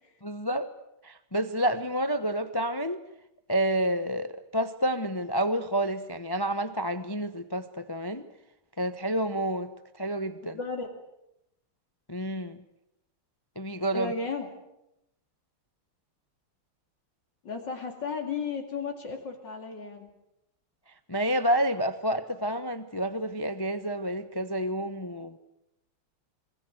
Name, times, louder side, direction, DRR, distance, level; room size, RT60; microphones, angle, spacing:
voice 1, 0.2-0.7 1.0-3.0 3.5-8.3 8.8-9.7 10.0-10.6 12.1-12.6 13.6-14.1 21.1-25.4, right 1 dB, 25° left, 10 dB, 0.4 m, -29 dB
voice 2, 10.4-10.9 13.9-14.6 17.4-20.1, left 4 dB, 55° left, 3 dB, 3.1 m, -34 dB
27.0 x 21.0 x 8.0 m, 0.84 s
omnidirectional pair, 2.4 m